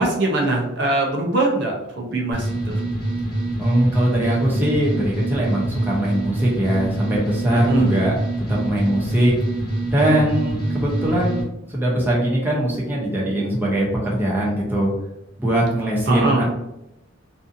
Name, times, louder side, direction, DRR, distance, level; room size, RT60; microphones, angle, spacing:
voice 1, 0.0-2.8 7.7-8.1 16.1-16.4, right 2 dB, 55° right, -1 dB, 0.5 m, -22 dB
sound 1, 2.3-11.4, right 1 dB, 15° left, 1.1 m, -25 dB
voice 2, 3.6-8.2 8.5-9.3 9.9-11.4 11.7-14.9 15.4-16.4, right 1 dB, 10° right, -5 dB, 0.5 m, -21 dB
2.6 x 2.6 x 2.5 m, 0.87 s
head